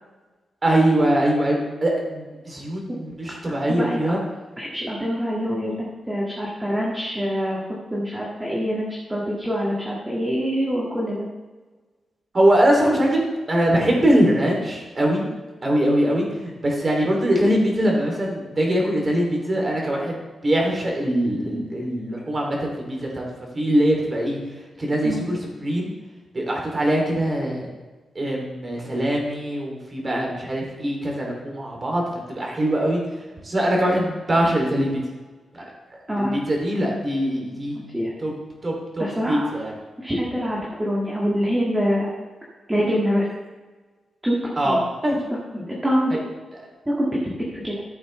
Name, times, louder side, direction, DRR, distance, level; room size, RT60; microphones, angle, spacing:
voice 1, 0.6-4.2 12.3-15.3 15.6-23.2 23.5-24.4 24.8-25.9 26.3-27.7 28.1-33.0 33.4-35.0 35.5-35.7 36.2-37.8 38.2-38.4 38.6-39.7 44.6-44.8 45.0-45.2 46.1-46.2, right 1 dB, 30° right, 0 dB, 2.8 m, -22 dB
voice 2, 3.7-4.1 4.6-7.6 7.9-11.3 25.0-25.2 36.1-36.4 37.7-38.1 39.0-39.5 40.0-42.1 42.7-43.3 44.2-44.4 44.6-44.8 45.5-46.1 46.9-47.2 47.5-47.8, equal, 10° right, -5 dB, 1.9 m, -25 dB
13.5 x 7.8 x 3.2 m, 1.3 s
wide cardioid pair, 115°, 0 cm